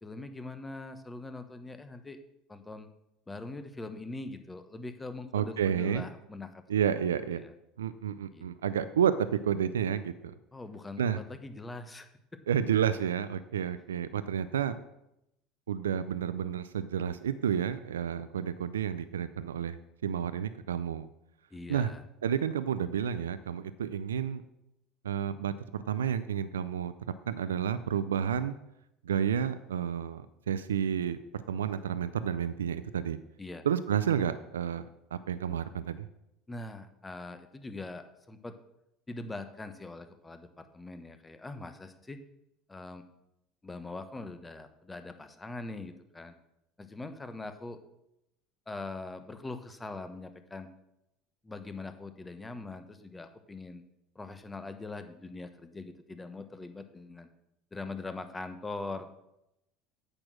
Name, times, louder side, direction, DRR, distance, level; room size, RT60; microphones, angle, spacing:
voice 1, 0.0-2.2 2.5-2.9 3.3-6.6 7.3-7.5 8.3-8.4 10.5-12.4 21.5-22.0 33.4-33.7 36.5-38.6 39.1-42.2 42.7-43.0 43.6-46.3 46.8-47.8 48.7-50.7 51.4-53.8 54.1-57.3 57.7-59.2, left 2 dB, 15° left, 9 dB, 1.2 m, -42 dB
voice 2, 5.3-6.1 6.7-7.4 7.8-10.3 11.0-11.2 12.5-14.7 15.7-21.1 21.7-21.9 22.2-24.4 25.0-26.9 27.3-28.6 29.0-31.2 31.5-33.2 33.7-34.9 35.1-36.1, right 8 dB, 85° right, 14 dB, 0.4 m, -30 dB
8.8 x 6.2 x 6.2 m, 0.84 s
hypercardioid pair, 75°, 0 cm